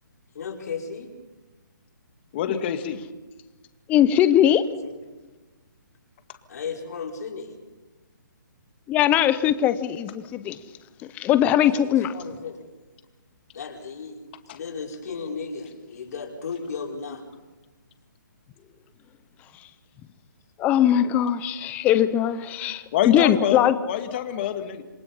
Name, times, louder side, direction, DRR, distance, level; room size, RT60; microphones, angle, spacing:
voice 1, 0.3-1.1 4.8-5.0 6.5-7.6 11.6-12.6 13.5-14.2 14.5-17.3, left 5 dB, 55° left, 5.5 m, -35 dB
voice 2, 2.3-3.0 14.5-14.6 22.9-24.8, left 9 dB, 30° left, 2.0 m, -26 dB
voice 3, 3.9-4.6 8.9-10.6 11.1-12.1 20.6-23.8, left 11 dB, 15° left, 0.8 m, -20 dB
28.0 x 21.5 x 5.6 m
hypercardioid pair, 160°, 11 cm